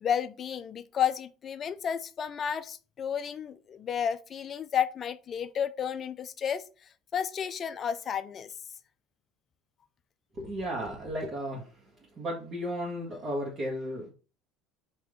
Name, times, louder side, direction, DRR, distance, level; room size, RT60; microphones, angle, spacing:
voice 1, 0.0-8.6, left 8 dB, 35° left, 0.4 m, -32 dB
voice 2, 10.4-11.7 12.2-14.1, equal, 35° right, 1.4 m, -34 dB
4.9 x 2.9 x 3.7 m
supercardioid pair, 115°, 0 cm